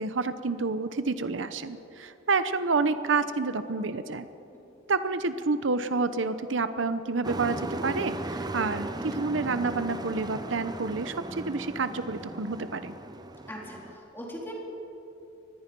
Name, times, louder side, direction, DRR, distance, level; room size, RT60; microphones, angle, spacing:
voice 1, 0.0-4.3 4.9-12.9, right 4 dB, 75° right, 11 dB, 0.8 m, -29 dB
Truck, 7.2-14.0, right 2 dB, 20° right, 0.8 m, -36 dB
voice 2, 13.5-14.5, equal, 10° left, -2 dB, 3.9 m, -40 dB
24.5 x 19.5 x 5.4 m, 2.9 s
head